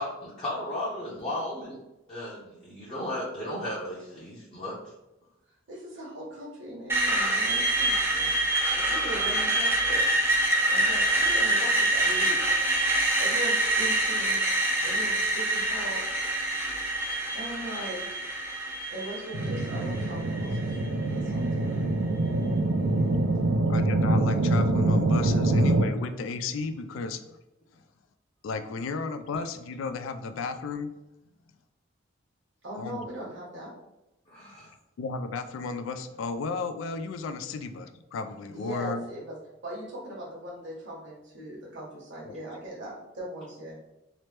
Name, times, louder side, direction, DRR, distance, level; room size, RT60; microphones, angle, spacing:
voice 1, 0.0-1.8 2.1-4.8 14.8-15.1 34.3-34.7, left 1 dB, 30° left, -7 dB, 0.6 m, -35 dB
voice 2, 5.7-8.4 8.8-10.0 10.7-12.4 13.2-14.4 14.8-16.0 17.3-18.0 18.9-20.6 21.1-21.8 32.6-33.7 38.5-39.3 39.6-43.8, right 1 dB, 65° right, -5 dB, 0.9 m, -39 dB
Screech, 6.9-20.8, right 1 dB, 15° right, 0.6 m, -26 dB
sound 1, 19.3-25.8, right 2 dB, 85° right, 0.4 m, -25 dB
voice 3, 23.7-27.4 28.4-30.9 32.8-33.0 35.0-39.1 42.2-42.3, left 4 dB, 85° left, 8 dB, 0.3 m, -34 dB
2.9 x 2.0 x 3.2 m, 0.93 s
head